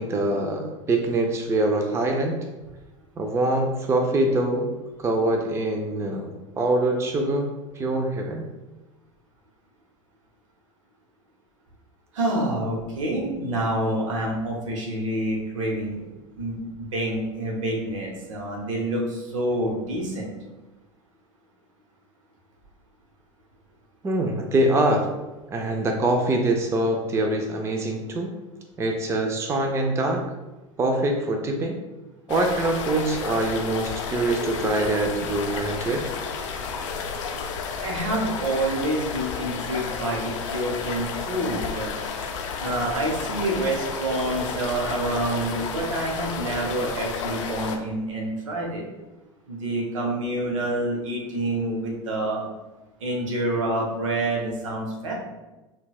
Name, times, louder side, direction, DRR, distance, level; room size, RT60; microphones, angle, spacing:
voice 1, 0.0-2.4 3.2-4.7 5.0-8.4 24.0-25.1 25.5-28.3 28.8-30.2 30.8-31.8 32.3-36.1, right 2 dB, 15° right, 3 dB, 0.4 m, -24 dB
voice 2, 12.1-16.0 16.4-20.3 37.8-41.9 42.6-48.8 49.5-52.5 53.0-55.1, right 1 dB, 75° right, -1 dB, 0.9 m, -27 dB
sound 1, 32.3-47.8, left 5 dB, 70° left, 0.4 m, -32 dB
3.9 x 2.2 x 2.3 m, 1.1 s
hypercardioid pair, 80°, 16 cm